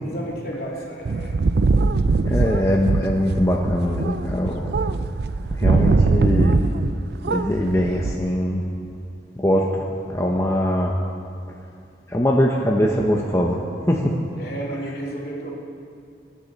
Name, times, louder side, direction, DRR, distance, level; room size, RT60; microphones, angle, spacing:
voice 1, 0.0-1.4 2.2-2.4 9.5-9.6 14.4-15.5, right 1 dB, 60° left, -4 dB, 2.8 m, -32 dB
sound 1, 1.1-7.0 7.2-8.2, right 3 dB, 65° right, 0.4 m, -21 dB
voice 2, 2.3-4.6 5.5-6.7 7.3-8.7 9.4-9.6 10.1-10.9 12.1-13.6 13.8-14.2, equal, 15° left, -2 dB, 0.8 m, -21 dB
21.0 x 10.5 x 4.1 m, 2.4 s
head